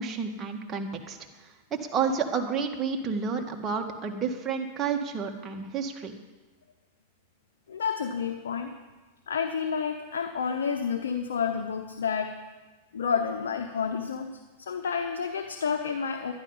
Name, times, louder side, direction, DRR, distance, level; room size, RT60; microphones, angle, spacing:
voice 1, 0.0-6.1, right 5 dB, 25° right, 2 dB, 1.6 m, -30 dB
voice 2, 7.7-8.7 9.3-12.3 12.9-14.3 14.6-16.3, left 6 dB, 85° left, 4 dB, 0.9 m, -30 dB
12.0 x 11.0 x 5.6 m, 1.2 s
hypercardioid pair, 120°, 0 cm